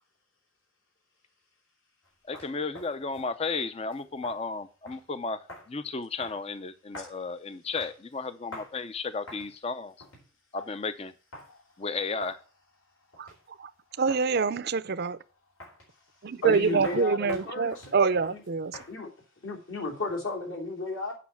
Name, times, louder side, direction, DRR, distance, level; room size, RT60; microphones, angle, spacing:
sound 1, 2.0-2.1 2.3-3.3 3.8-4.4 4.9-5.0 5.5-5.7 6.2-6.4 6.9-7.2 7.8-8.2 8.5-8.7 9.3-9.5 10.0-10.3 11.3-11.5 12.2-12.4 13.1-13.5 14.1-14.5 15.6-15.9 16.8-19.0, left 2 dB, 85° left, 4.2 m, -45 dB
voice 1, 2.2-9.9 10.5-11.1 11.8-12.4, left 4 dB, 30° left, 0.5 m, -34 dB
voice 2, 14.0-15.2 16.2-18.8, right 4 dB, 50° right, 0.5 m, -26 dB
voice 3, 16.4-18.0 18.3-18.4 18.9-19.1 19.4-21.2, left 2 dB, 65° left, 3.2 m, -33 dB
8.4 x 5.6 x 7.1 m
head